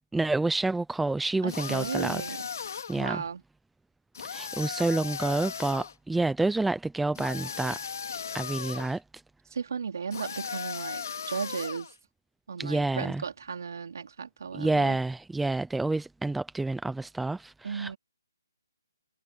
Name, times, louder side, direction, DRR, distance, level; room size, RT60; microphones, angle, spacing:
voice 1, 0.1-2.3 2.9-3.2 4.2-7.8 8.3-9.0 12.6-13.2 14.5-17.9, right 2 dB, ahead, 0.5 m, -28 dB
voice 2, 1.4-2.4 3.0-3.4 9.5-11.9 12.5-15.0 17.6-18.0, right 6 dB, 55° right, 3.6 m, -35 dB
sound 1, 1.5-3.1 4.1-5.9 7.2-9.0 10.1-11.9, left 6 dB, 50° left, 2.6 m, -37 dB
hypercardioid pair, 170°, 2 cm